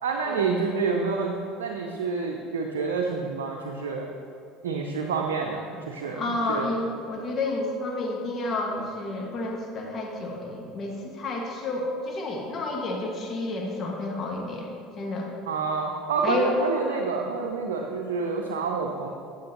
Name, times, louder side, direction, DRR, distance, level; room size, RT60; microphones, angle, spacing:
voice 1, 0.0-4.1 4.6-6.7 15.5-19.1, right 4 dB, 85° right, 1 dB, 0.6 m, -28 dB
voice 2, 6.1-15.3 16.2-16.6, left 2 dB, 40° left, -1 dB, 1.7 m, -30 dB
10.0 x 7.1 x 2.9 m, 2.5 s
hypercardioid pair, 80°, 0 cm